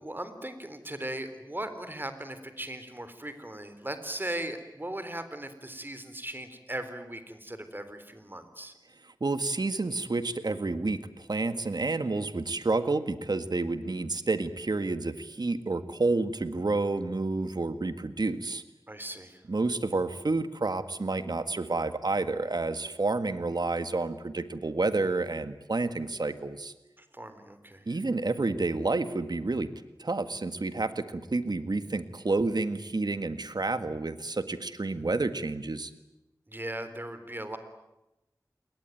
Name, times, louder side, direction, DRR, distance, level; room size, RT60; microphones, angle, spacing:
voice 1, 0.0-8.7 18.9-19.4 27.0-28.0 36.5-37.6, right 1 dB, 30° right, 10 dB, 3.7 m, -38 dB
voice 2, 9.2-18.6 19.5-26.7 27.9-29.7 30.0-35.9, right 3 dB, 80° right, 11 dB, 1.7 m, -29 dB
28.5 x 22.0 x 9.2 m, 0.93 s
wide cardioid pair, 50°, 7 cm